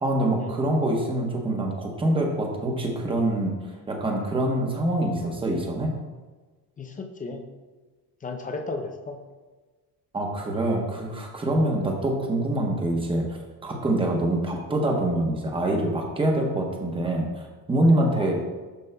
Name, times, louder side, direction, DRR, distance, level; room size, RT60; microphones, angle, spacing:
voice 1, 0.0-3.6 3.9-5.9 10.1-18.3, right 1 dB, 15° right, 1 dB, 0.9 m, -25 dB
voice 2, 6.8-7.4 8.2-9.2 11.6-11.7 18.1-18.3, left 3 dB, 20° left, 5 dB, 0.4 m, -34 dB
12.5 x 5.2 x 2.2 m, 1.3 s
cardioid pair, 170°, 40 cm